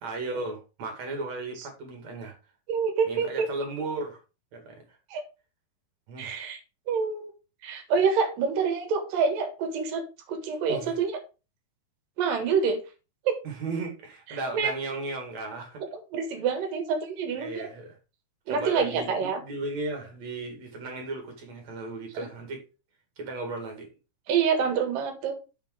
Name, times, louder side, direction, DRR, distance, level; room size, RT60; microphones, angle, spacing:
voice 1, 0.0-2.3 3.0-4.2 4.5-4.8 6.1-6.4 10.7-10.9 13.4-15.8 17.4-18.0 18.5-22.6 23.2-23.9, right 2 dB, 50° right, 3.3 m, -35 dB
voice 2, 2.7-3.5 5.1-5.2 6.2-6.6 6.9-7.3 7.6-10.0 10.3-11.1 12.2-12.8 13.3-13.4 14.5-14.7 16.1-17.7 18.5-19.4 24.3-25.4, right 6 dB, 75° right, 3.1 m, -26 dB
7.0 x 5.2 x 4.9 m
omnidirectional pair, 4.1 m